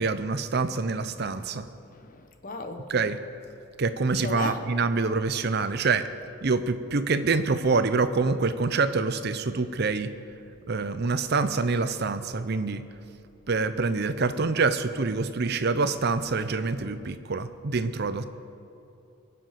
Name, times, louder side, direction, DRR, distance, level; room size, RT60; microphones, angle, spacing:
voice 1, 0.0-1.7 2.9-3.2 3.8-6.1 6.4-10.1 10.7-12.8 13.5-18.2, right 4 dB, 55° right, 11 dB, 0.6 m, -26 dB
voice 2, 1.9-2.9 4.2-4.6, left 3 dB, 40° left, 7 dB, 1.0 m, -35 dB
20.5 x 7.8 x 5.9 m, 2.7 s
head